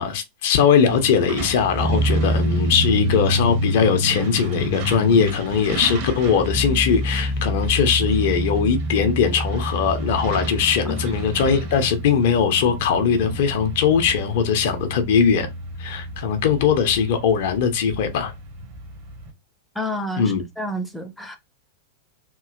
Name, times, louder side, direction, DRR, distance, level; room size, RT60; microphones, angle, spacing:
voice 1, 0.0-15.5 15.8-18.3 20.2-20.4, left 7 dB, 55° left, 0.7 m, -20 dB
Truck, 0.8-19.3, equal, 45° right, 1.1 m, -27 dB
voice 2, 19.8-21.4, equal, ahead, 0.7 m, -29 dB
3.0 x 2.8 x 2.4 m
figure-of-eight pair, 90°, 0 cm